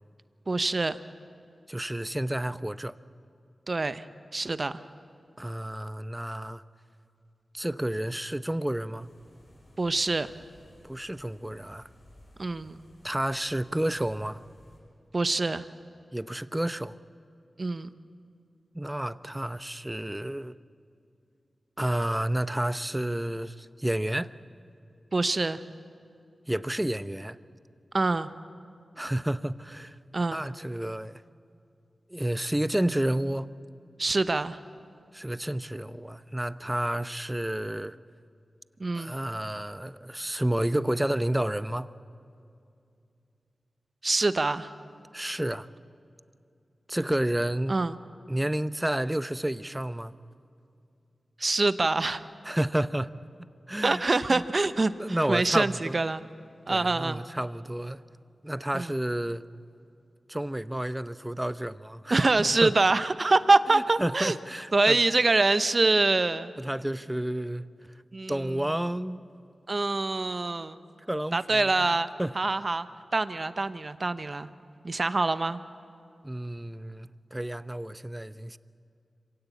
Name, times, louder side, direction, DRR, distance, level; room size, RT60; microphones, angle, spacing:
voice 1, 0.5-1.0 3.7-4.0 4.3-4.8 9.8-10.3 12.4-12.8 15.1-15.7 17.6-17.9 25.1-25.6 27.9-28.3 30.1-30.4 34.0-34.6 38.8-39.1 44.0-44.7 47.7-48.0 51.4-52.2 53.8-56.2 56.7-57.2 58.7-58.9 62.1-64.4 64.7-66.5 68.1-68.6 69.7-70.8 71.3-72.1 72.3-72.9 73.1-74.5 74.8-75.6, right 3 dB, 50° right, 0.9 m, -25 dB
voice 2, 1.7-2.9 5.4-6.6 7.5-9.1 10.8-11.9 13.0-14.4 16.1-17.0 18.7-20.5 21.8-24.3 26.5-27.4 29.0-30.0 30.3-31.2 32.1-33.5 35.1-38.0 39.0-41.9 45.1-45.7 46.9-47.7 48.3-50.1 52.4-53.2 53.7-54.0 54.3-54.4 55.0-56.0 56.7-58.0 58.4-59.4 60.3-62.2 62.6-62.7 63.7-65.0 66.6-67.7 68.3-69.2 71.1-71.7 72.2-72.3 76.2-78.6, right 1 dB, 15° right, 0.7 m, -30 dB
sound 1, 9.0-14.8, left 1 dB, 75° left, 6.8 m, -57 dB
25.5 x 17.0 x 8.4 m
cardioid pair, 40°, 0 cm